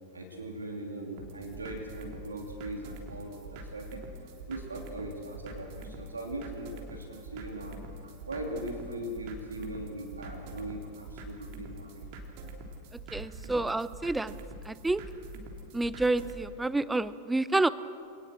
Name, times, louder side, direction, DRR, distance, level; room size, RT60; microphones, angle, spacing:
voice 1, 0.1-7.8 8.0-12.1, right 1 dB, 75° right, 2 dB, 2.9 m, -40 dB
sound 1, 1.2-16.4, right 2 dB, 45° right, 3.3 m, -45 dB
voice 2, 13.1-14.3 14.6-15.0 15.7-17.7, right 2 dB, 5° right, 17 dB, 0.7 m, -28 dB
25.5 x 19.0 x 7.7 m, 2.5 s
figure-of-eight pair, 90°, 0 cm